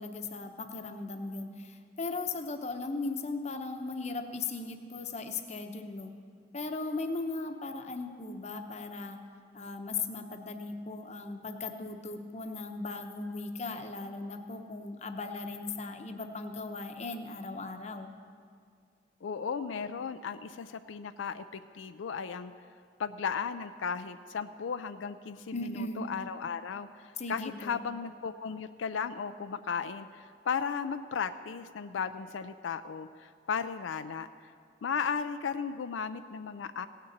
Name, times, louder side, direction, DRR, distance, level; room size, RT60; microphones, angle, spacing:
voice 1, 0.0-6.1 6.5-9.2 9.5-18.1 25.5-26.0 27.2-27.8, left 3 dB, 35° left, 6 dB, 0.8 m, -37 dB
voice 2, 19.2-22.5 23.0-34.3 34.8-36.9, left 6 dB, 90° left, 10 dB, 0.4 m, -35 dB
16.5 x 6.7 x 8.6 m, 2.2 s
head